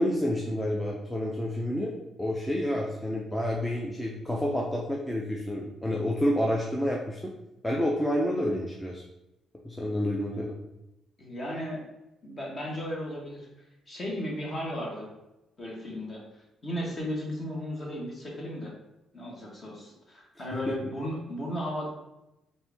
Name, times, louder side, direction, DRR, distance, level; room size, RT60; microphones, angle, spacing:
voice 1, 0.0-1.9 2.2-7.2 7.6-9.0 9.6-10.6 20.7-20.8, left 1 dB, 10° left, -2 dB, 0.6 m, -29 dB
voice 2, 11.2-11.8 12.2-13.5 13.9-15.1 15.6-16.2 16.6-18.7 19.1-21.9, equal, 35° left, -2 dB, 1.5 m, -35 dB
4.4 x 2.7 x 3.5 m, 0.94 s
cardioid pair, 90°, 0 cm